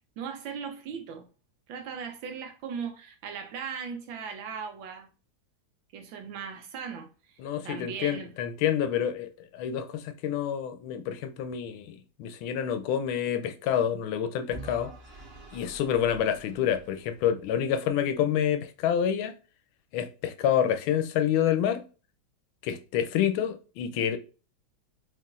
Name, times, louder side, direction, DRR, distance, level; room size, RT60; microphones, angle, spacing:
voice 1, 0.2-1.2 1.7-5.1 5.9-8.3, right 6 dB, 75° right, 1.3 m, -38 dB
voice 2, 7.4-14.9 15.5-19.3 19.9-21.8 22.6-24.2, left 9 dB, 90° left, 1.4 m, -28 dB
Vehicle / Engine, 14.5-17.5, right 2 dB, 50° right, 0.7 m, -46 dB
4.6 x 3.0 x 2.4 m
omnidirectional pair, 2.2 m